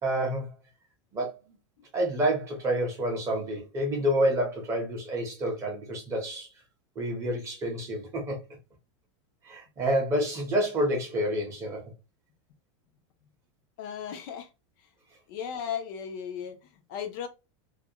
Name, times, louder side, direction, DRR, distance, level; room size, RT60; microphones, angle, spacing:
voice 1, 0.0-0.5 1.1-1.3 1.9-6.5 7.0-8.4 9.4-11.8, right 1 dB, 20° right, 0.7 m, -28 dB
voice 2, 13.8-14.5 15.3-17.3, left 8 dB, 45° left, 0.4 m, -36 dB
2.4 x 2.0 x 2.7 m
supercardioid pair, 165°, 15 cm